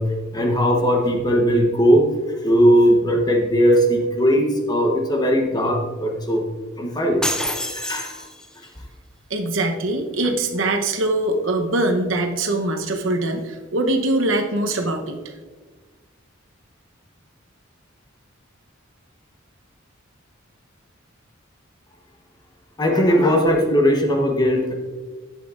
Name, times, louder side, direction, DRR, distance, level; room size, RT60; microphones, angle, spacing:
voice 1, 0.0-2.0 2.4-6.5 6.8-7.3 7.7-8.2 22.8-24.7, equal, 20° left, 2 dB, 1.0 m, -18 dB
sound 1, 7.2-8.7, left 1 dB, 5° left, 0.4 m, -27 dB
voice 2, 9.3-15.2, right 2 dB, 70° right, 4 dB, 0.9 m, -22 dB
11.0 x 8.2 x 2.5 m, 1.3 s
head